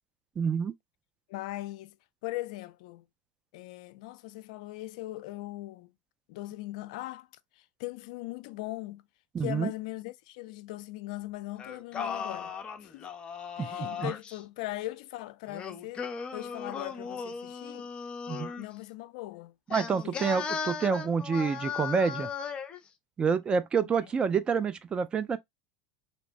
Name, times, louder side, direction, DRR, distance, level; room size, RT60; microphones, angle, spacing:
voice 1, 0.4-0.7 9.3-9.7 13.6-13.7 14.0-14.1 18.3-18.5 19.7-22.3 23.2-25.4, right 6 dB, 25° right, 0.4 m, -28 dB
voice 2, 1.3-2.0 2.2-3.0 3.5-5.9 6.3-7.3 7.6-9.0 9.4-13.1 13.6-17.9 18.6-19.5 19.8-20.4 23.8-23.9, left 17 dB, 70° left, 0.3 m, -40 dB
Singing, 11.6-14.4 15.5-18.7 19.7-22.8, left 6 dB, 25° left, 0.6 m, -37 dB
3.0 x 2.1 x 2.5 m
supercardioid pair, 115°, 4 cm